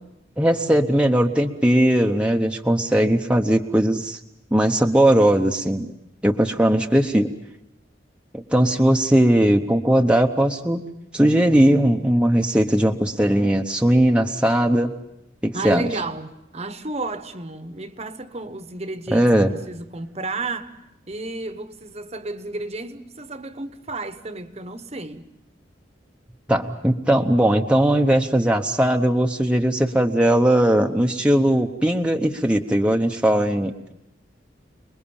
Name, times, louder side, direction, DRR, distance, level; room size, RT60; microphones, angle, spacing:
voice 1, 0.4-4.2 4.5-5.9 6.2-7.3 8.3-10.8 11.1-15.0 15.4-15.9 19.1-19.5 26.5-33.9, right 1 dB, 5° right, 0.9 m, -19 dB
voice 2, 15.5-20.8 21.1-25.3, right 2 dB, 35° right, 1.1 m, -32 dB
29.5 x 21.0 x 7.1 m
head